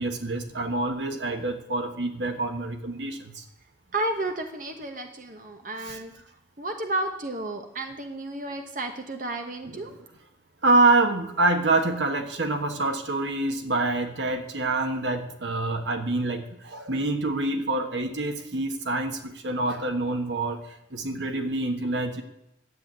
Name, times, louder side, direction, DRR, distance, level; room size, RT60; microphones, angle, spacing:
voice 1, 0.0-3.4 5.8-6.0 9.6-10.0 10.6-22.2, right 2 dB, 75° right, 6 dB, 1.5 m, -26 dB
voice 2, 3.9-6.1 6.6-10.0, right 2 dB, 45° right, 5 dB, 1.2 m, -32 dB
11.0 x 8.0 x 9.1 m, 0.86 s
head